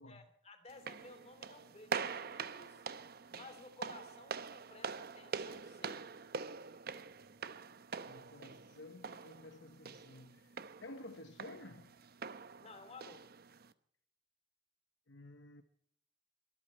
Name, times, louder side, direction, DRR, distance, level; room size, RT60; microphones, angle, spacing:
voice 1, 0.0-2.8 3.3-6.0 12.6-13.3, left 2 dB, 35° left, 2.9 m, -56 dB
sound 1, 0.7-13.7, right 5 dB, 50° right, 0.8 m, -45 dB
voice 2, 8.0-11.9 15.1-15.6, left 2 dB, 65° left, 1.0 m, -53 dB
23.0 x 13.5 x 4.4 m
head